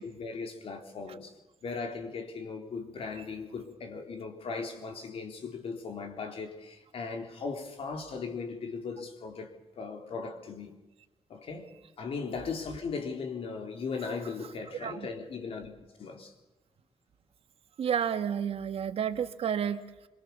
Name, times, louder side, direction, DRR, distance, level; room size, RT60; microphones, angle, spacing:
voice 1, 0.0-10.7 11.3-11.7 12.0-16.3, left 4 dB, 60° left, 3.8 m, -38 dB
voice 2, 17.8-19.8, right 8 dB, 60° right, 1.5 m, -30 dB
25.5 x 23.5 x 7.1 m
wide cardioid pair, 145°, 11 cm